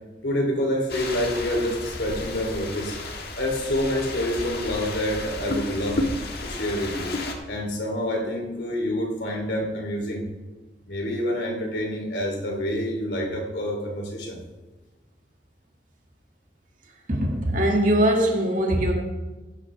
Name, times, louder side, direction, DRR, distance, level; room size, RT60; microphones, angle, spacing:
voice 1, 0.2-3.0 3.4-6.0 6.4-7.1 7.5-10.3 10.9-14.4, left 1 dB, 85° left, 0 dB, 2.9 m, -27 dB
sound 1, 0.9-7.3, left 2 dB, 60° left, 1.6 m, -32 dB
voice 2, 17.1-18.9, right 1 dB, 45° right, 1 dB, 1.9 m, -21 dB
16.0 x 9.8 x 3.3 m, 1.2 s
head